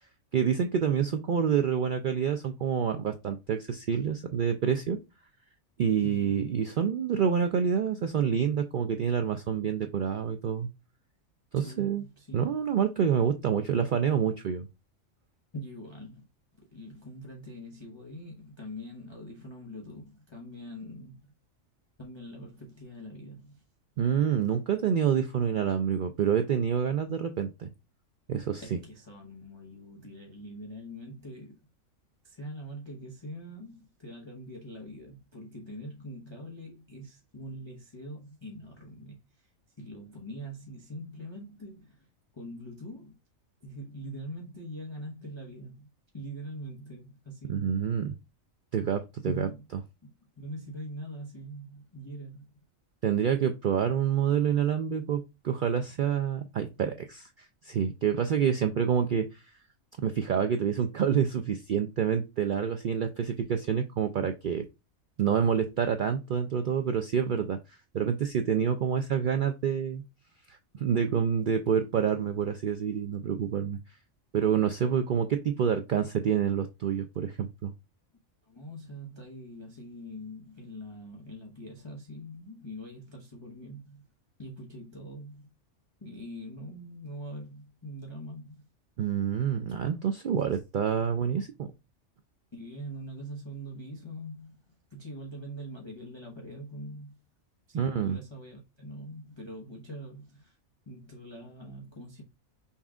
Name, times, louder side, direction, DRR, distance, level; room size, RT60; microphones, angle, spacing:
voice 1, 0.3-5.0 5.8-10.7 11.5-12.0 12.3-14.7 24.0-27.7 28.3-28.8 47.5-48.2 48.7-49.5 53.0-59.4 60.0-64.7 65.2-67.6 67.9-70.0 70.5-73.8 74.3-77.7 89.0-91.7 97.7-98.2, right 8 dB, 85° right, 0.4 m, -27 dB
voice 2, 6.0-6.5 11.5-12.5 15.5-16.2 16.6-21.3 22.0-23.6 28.6-31.6 32.2-39.5 39.8-42.1 42.3-43.2 43.6-45.9 46.1-47.8 49.3-49.6 50.0-50.1 50.4-52.4 78.5-84.0 84.4-85.5 86.0-88.7 92.5-94.5 94.9-97.2 97.7-100.6 100.9-102.2, equal, 25° left, 0.8 m, -43 dB
5.6 x 2.3 x 3.6 m
omnidirectional pair, 1.4 m